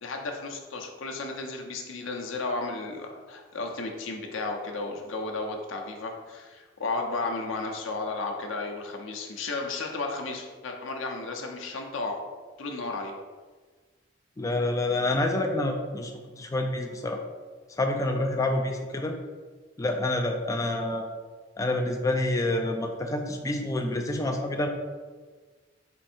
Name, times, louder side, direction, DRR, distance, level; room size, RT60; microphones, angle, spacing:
voice 1, 0.0-12.2 12.6-13.1, left 3 dB, 90° left, 2 dB, 0.7 m, -33 dB
voice 2, 14.4-16.1 16.4-17.2 17.8-19.2 19.8-21.1 21.6-24.7, left 2 dB, 15° left, 3 dB, 0.3 m, -27 dB
4.5 x 2.7 x 4.3 m, 1.4 s
head